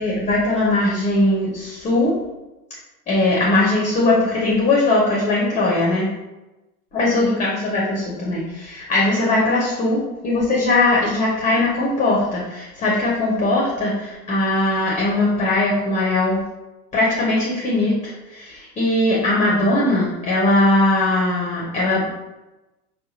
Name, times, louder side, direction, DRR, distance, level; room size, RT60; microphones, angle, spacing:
voice 1, 0.0-2.2 3.1-6.1 6.9-10.0 10.2-16.4 16.9-22.1, left 2 dB, 15° left, -4 dB, 0.7 m, -20 dB
4.7 x 2.3 x 2.7 m, 1.0 s
figure-of-eight pair, 85°, 47 cm